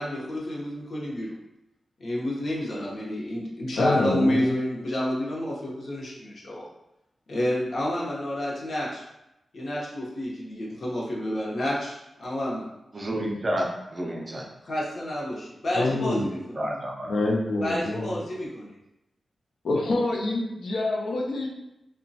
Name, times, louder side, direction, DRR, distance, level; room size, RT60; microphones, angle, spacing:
voice 1, 0.0-1.4 2.0-6.6 7.3-9.0 9.5-12.7 14.6-16.7 17.6-18.8, left 1 dB, 55° left, -5 dB, 0.7 m, -29 dB
voice 2, 3.8-4.6 15.7-16.3 17.0-18.2 19.6-21.5, left 2 dB, 85° left, -1 dB, 0.4 m, -26 dB
voice 3, 12.9-14.5 16.6-17.1, equal, 30° right, 0 dB, 0.4 m, -30 dB
2.9 x 2.2 x 2.6 m, 0.90 s
wide cardioid pair, 125°, 0 cm